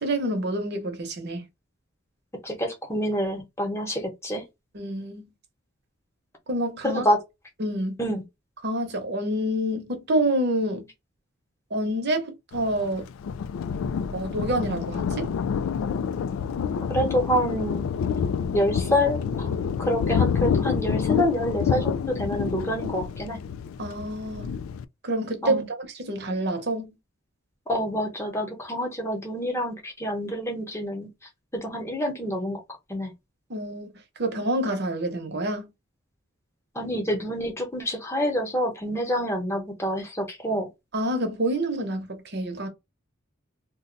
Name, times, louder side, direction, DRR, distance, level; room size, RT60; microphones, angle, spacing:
voice 1, 0.0-1.5 4.7-5.2 6.5-7.0 7.6-8.0 8.6-10.9 11.7-13.1 14.1-15.3 23.8-24.5 25.0-27.0 33.5-33.9 34.2-35.7 40.9-42.7, right 1 dB, 55° right, 0.9 m, -27 dB
voice 2, 2.4-4.4 6.8-7.2 8.0-8.2 16.9-17.9 18.5-23.4 25.4-25.7 27.7-31.1 31.5-32.6 32.9-33.1 36.7-40.7, equal, 15° left, 1.0 m, -27 dB
Thunder, 12.5-24.8, left 6 dB, 85° left, 0.3 m, -28 dB
2.5 x 2.1 x 3.8 m
head